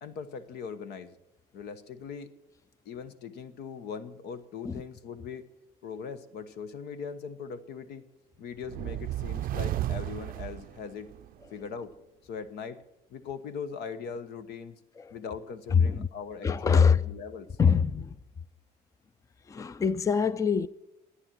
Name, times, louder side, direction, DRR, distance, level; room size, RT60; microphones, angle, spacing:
voice 1, 0.0-1.2 1.5-2.3 2.8-5.5 5.8-8.1 8.4-11.1 11.5-11.9 12.2-12.8 13.1-14.8 15.1-17.5, left 6 dB, 75° left, 1.1 m, -40 dB
sound 1, 8.6-11.3, right 14 dB, 55° right, 0.4 m, -33 dB
voice 2, 15.7-16.1 16.4-17.0 17.6-18.1 19.5-20.7, left 6 dB, 20° left, 0.4 m, -24 dB
13.0 x 9.9 x 7.5 m
cardioid pair, 110°, 17 cm